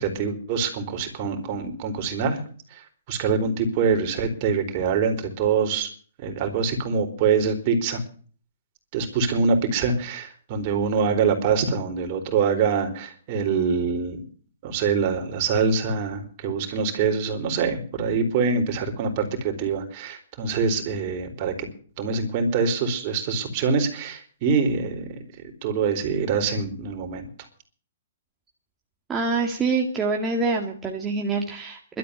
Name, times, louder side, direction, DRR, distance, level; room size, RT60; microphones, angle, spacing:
voice 1, 0.0-2.4 2.7-2.8 3.1-5.9 6.2-8.0 8.9-14.2 14.6-21.5 22.0-25.2 25.6-27.3, right 5 dB, 40° right, 5 dB, 4.1 m, -24 dB
voice 2, 29.1-32.0, right 4 dB, 15° right, 0 dB, 2.1 m, -25 dB
12.5 x 8.5 x 9.5 m, 0.42 s
hypercardioid pair, 125°, 0 cm